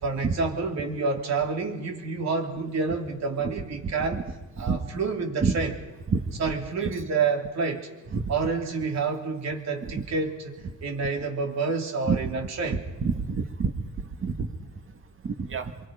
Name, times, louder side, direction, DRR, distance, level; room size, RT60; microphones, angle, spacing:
voice 1, 0.0-4.2 4.6-5.7 6.4-7.9 8.3-12.8, right 4 dB, 60° right, 3 dB, 3.3 m, -28 dB
voice 2, 13.0-13.7 14.2-14.5 15.4-15.7, right 5 dB, 45° right, 7 dB, 2.3 m, -27 dB
26.5 x 23.5 x 5.3 m, 1.1 s
cardioid pair, 90°, 30 cm